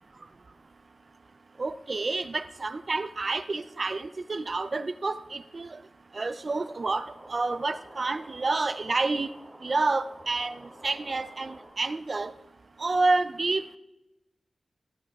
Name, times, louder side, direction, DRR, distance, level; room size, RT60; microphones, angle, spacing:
voice 1, 1.6-5.8 6.1-9.3 9.6-12.3 12.8-13.8, right 3 dB, 45° right, 13 dB, 0.4 m, -29 dB
sound 1, 6.4-11.7, right 1 dB, 20° right, 1.7 m, -50 dB
15.5 x 8.8 x 2.4 m, 0.92 s
wide cardioid pair, 85°, 0 cm